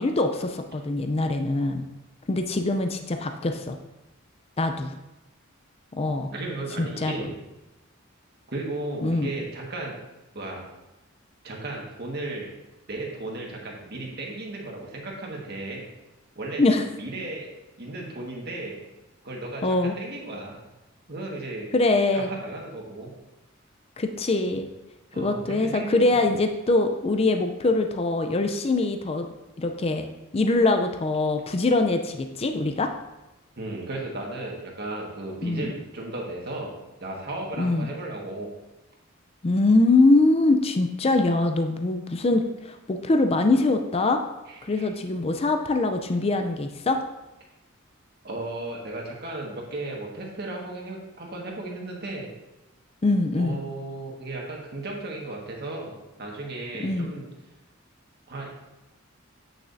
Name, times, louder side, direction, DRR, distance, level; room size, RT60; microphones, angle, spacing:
voice 1, 0.0-1.8 2.3-3.8 4.6-4.9 6.0-6.3 6.8-7.3 9.0-9.3 16.6-16.9 19.6-19.9 21.7-22.3 24.0-24.7 25.2-29.3 29.6-30.1 30.3-32.9 35.4-35.7 37.6-37.9 39.4-44.2 44.6-47.0 53.0-53.6 56.8-57.1, left 2 dB, 30° left, 6 dB, 0.5 m, -23 dB
voice 2, 6.3-7.4 8.5-10.0 10.3-10.7 11.4-12.5 12.9-15.9 16.4-16.6 17.0-17.5 17.8-18.7 19.2-20.6 21.1-21.7 22.1-23.1 25.1-26.2 33.6-36.7 37.0-38.5 44.5-44.9 48.2-52.3 53.3-57.3 58.3-58.5, right 2 dB, 50° right, -1 dB, 1.6 m, -35 dB
8.7 x 6.5 x 2.6 m, 0.99 s
head